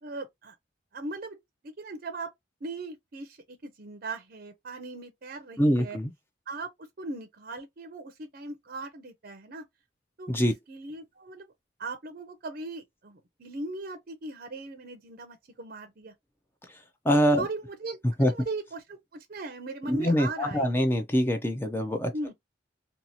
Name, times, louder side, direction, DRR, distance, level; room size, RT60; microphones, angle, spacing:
voice 1, 0.0-0.5 0.9-1.4 1.8-2.3 2.6-6.0 6.5-9.6 10.2-11.5 11.8-16.1 17.4-20.9 22.1-22.3, right 3 dB, 50° right, 0.5 m, -39 dB
voice 2, 5.6-6.1 10.3-10.5 17.1-17.4 18.2-18.3 19.9-22.1, equal, 10° left, 0.4 m, -24 dB
2.6 x 2.4 x 2.8 m
head